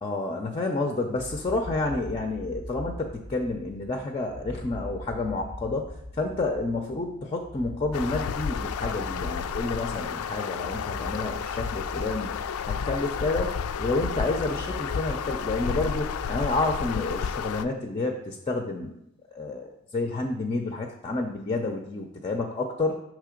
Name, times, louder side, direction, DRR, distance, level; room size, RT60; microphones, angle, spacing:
voice 1, 0.0-12.3 12.7-19.0 19.3-23.0, left 2 dB, 25° left, 3 dB, 0.5 m, -29 dB
sound 1, 1.2-16.7, equal, 35° right, 0.6 m, -41 dB
sound 2, 7.9-17.7, left 7 dB, 85° left, 0.3 m, -32 dB
6.6 x 3.2 x 5.0 m, 0.81 s
head